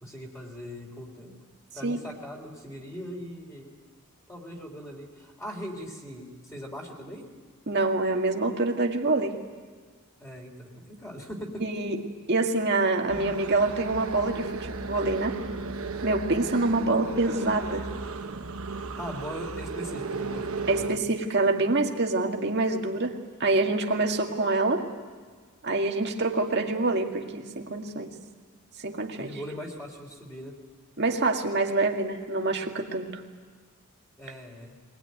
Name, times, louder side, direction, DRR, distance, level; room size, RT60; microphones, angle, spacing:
voice 1, 0.0-1.3 1.7-3.7 4.3-7.3 10.2-11.6 19.0-20.9 29.1-30.5 34.2-34.7, equal, 15° left, -1 dB, 3.3 m, -40 dB
voice 2, 7.7-9.4 11.6-12.0 12.3-15.4 16.0-17.9 20.7-24.9 25.6-28.1 28.8-29.3 31.0-33.2, right 2 dB, 50° right, 3 dB, 1.9 m, -26 dB
sound 1, 13.1-21.0, right 4 dB, 70° right, 1.1 m, -35 dB
22.0 x 20.0 x 9.5 m, 1.5 s
head